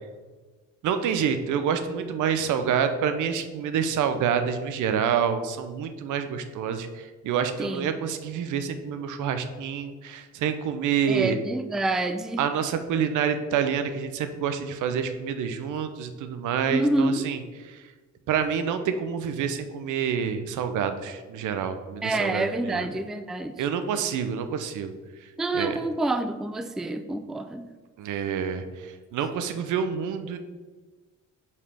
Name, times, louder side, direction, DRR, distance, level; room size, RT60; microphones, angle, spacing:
voice 1, 0.8-11.4 12.4-17.4 18.3-22.8 23.6-24.9 25.5-25.8 28.0-28.6 29.1-30.4, right 7 dB, 80° right, 9 dB, 0.6 m, -27 dB
voice 2, 7.6-7.9 11.1-12.4 16.7-17.2 22.0-23.6 25.4-27.7, right 2 dB, ahead, 9 dB, 0.3 m, -27 dB
5.4 x 3.3 x 5.4 m, 1.3 s
cardioid pair, 90°, 30 cm